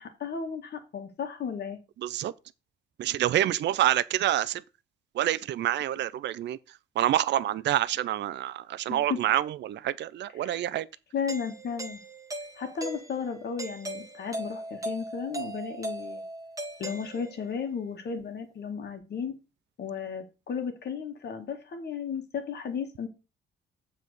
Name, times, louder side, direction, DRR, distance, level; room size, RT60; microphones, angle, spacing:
voice 1, 0.0-1.8 8.9-9.2 10.4-10.6 11.1-12.0 12.6-16.2 16.8-19.4 19.8-23.1, left 6 dB, 55° left, 1.9 m, -34 dB
voice 2, 2.0-2.3 3.0-4.6 5.1-6.6 7.0-10.9, right 12 dB, 60° right, 0.5 m, -27 dB
Doorbell, 11.3-17.6, right 2 dB, 15° right, 1.4 m, -39 dB
7.4 x 4.1 x 6.5 m
cardioid pair, 90°, 20 cm